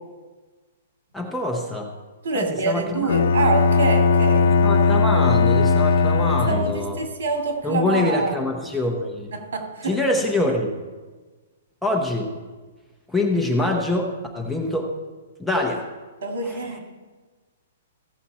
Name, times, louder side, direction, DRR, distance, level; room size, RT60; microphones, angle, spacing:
voice 1, 1.1-1.9 2.3-3.1 3.4-3.5 4.4-7.0 7.6-9.3 9.8-10.8 11.8-12.3 13.1-14.9 15.4-15.9 16.4-16.8, left 2 dB, ahead, 0 dB, 0.7 m, -25 dB
voice 2, 2.2-4.5 6.5-8.4 9.5-10.0 16.2-16.8, right 3 dB, 70° right, 2 dB, 2.4 m, -25 dB
Bowed string instrument, 3.1-7.0, left 4 dB, 75° left, 0.6 m, -18 dB
15.0 x 7.3 x 4.2 m, 1.3 s
hypercardioid pair, 175°, 0 cm